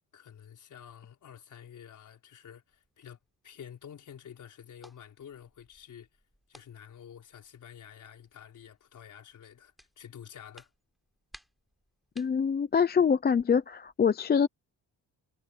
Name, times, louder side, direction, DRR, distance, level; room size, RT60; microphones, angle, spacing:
voice 1, 0.1-3.2 3.4-6.1 6.5-10.7, left 8 dB, 55° left, 4.6 m, -49 dB
sound 1, 2.7-13.9, equal, ahead, 6.1 m, -61 dB
voice 2, 12.2-14.5, left 6 dB, 25° left, 0.6 m, -25 dB
cardioid pair, 160°, 36 cm